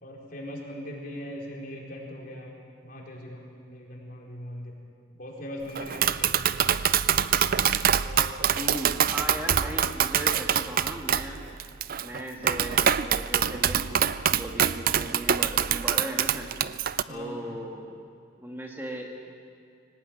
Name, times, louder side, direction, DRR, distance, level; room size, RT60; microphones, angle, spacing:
voice 1, 0.0-2.6 2.8-4.8 5.2-6.6 8.0-8.5 17.1-17.6, left 1 dB, 45° left, -2 dB, 4.6 m, -40 dB
Tap, 5.8-17.0, right 8 dB, 45° right, 0.5 m, -25 dB
voice 2, 8.5-11.4 12.0-16.5 17.1-18.1 18.4-19.3, right 1 dB, 10° right, 0 dB, 1.8 m, -37 dB
24.0 x 18.5 x 9.0 m, 2.3 s
head